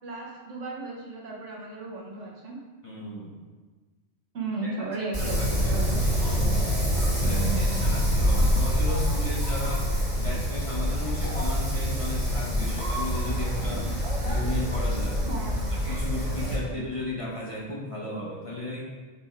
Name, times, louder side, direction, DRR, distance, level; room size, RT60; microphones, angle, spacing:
voice 1, 0.0-2.6 4.3-6.0 7.2-7.9 15.3-15.8 16.2-16.8, right 3 dB, 70° right, -2 dB, 1.5 m, -35 dB
voice 2, 2.8-3.4 4.8-4.9 5.2-5.8 6.2-6.6 7.2-9.9 10.2-13.9 14.2-15.2 15.7-18.9, left 1 dB, 30° left, -4 dB, 0.9 m, -35 dB
Wind, 5.1-16.6, equal, 35° right, 2.1 m, -26 dB
7.1 x 3.5 x 4.4 m, 1.3 s
omnidirectional pair, 1.3 m